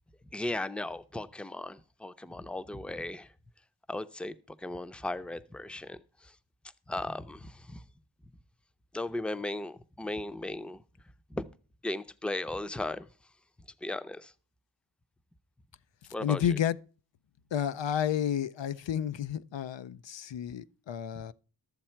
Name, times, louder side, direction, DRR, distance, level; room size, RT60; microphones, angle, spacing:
voice 1, 0.3-3.3 3.9-6.3 6.9-7.8 8.9-10.8 11.3-11.5 11.8-13.1 13.8-14.3 16.1-16.6, left 2 dB, 5° left, 0.5 m, -36 dB
voice 2, 16.2-16.8 17.5-21.3, left 9 dB, 90° left, 0.5 m, -31 dB
12.5 x 7.2 x 4.4 m
wide cardioid pair, 70°, 43 cm